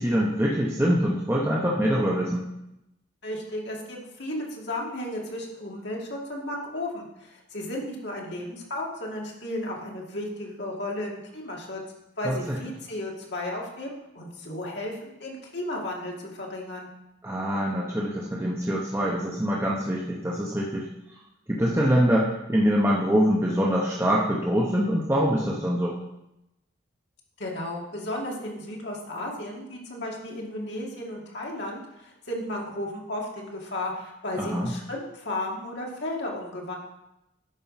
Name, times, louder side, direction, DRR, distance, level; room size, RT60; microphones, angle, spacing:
voice 1, 0.0-2.4 12.2-12.6 17.2-20.9 21.5-26.0 34.4-34.7, equal, 10° right, -4 dB, 0.9 m, -24 dB
voice 2, 3.2-11.8 12.2-16.9 27.4-36.8, left 1 dB, 55° left, -2 dB, 2.1 m, -34 dB
11.5 x 4.6 x 5.7 m, 0.90 s
head